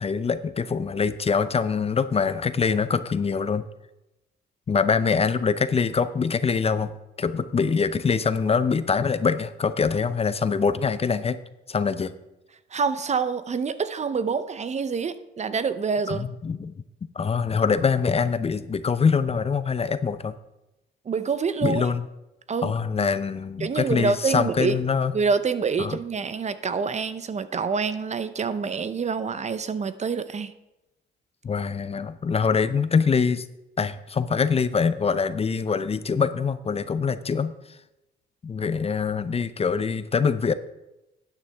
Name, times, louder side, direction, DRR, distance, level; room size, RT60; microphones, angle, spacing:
voice 1, 0.0-3.6 4.7-6.9 7.2-11.4 11.7-12.1 16.1-16.7 17.2-20.3 21.6-22.1 22.6-25.1 25.8-26.0 31.4-33.5 33.8-37.5 38.4-40.5, left 5 dB, 30° left, 13 dB, 0.6 m, -24 dB
voice 2, 12.7-16.3 21.1-21.9 22.5-22.7 23.6-24.8 25.1-30.5, right 5 dB, 35° right, 13 dB, 0.6 m, -26 dB
12.5 x 9.2 x 3.4 m, 0.96 s
cardioid pair, 90°, 20 cm